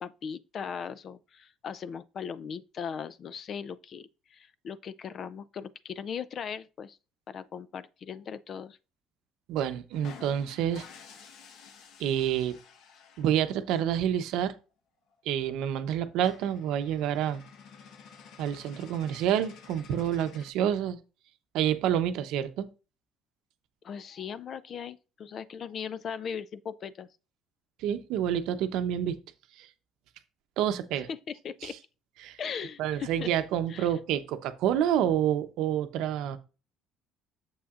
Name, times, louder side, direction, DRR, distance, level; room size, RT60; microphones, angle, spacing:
voice 1, 0.0-7.0 7.3-8.8 23.8-27.1 31.1-31.8 32.4-33.3 33.7-33.9, left 7 dB, 45° left, 0.4 m, -38 dB
voice 2, 9.5-10.9 12.0-12.6 13.2-14.5 15.3-17.4 18.4-21.0 21.5-22.7 27.8-29.2 29.6-29.7 30.6-31.1 31.6-31.8 32.2-32.4 32.8-36.4, right 10 dB, 75° right, 0.8 m, -28 dB
sound 1, 9.9-13.6 15.1-15.2 15.5-15.6 15.9-16.0 16.2-20.5, left 6 dB, 65° left, 1.1 m, -51 dB
8.6 x 7.1 x 2.5 m
cardioid pair, 130°, 0 cm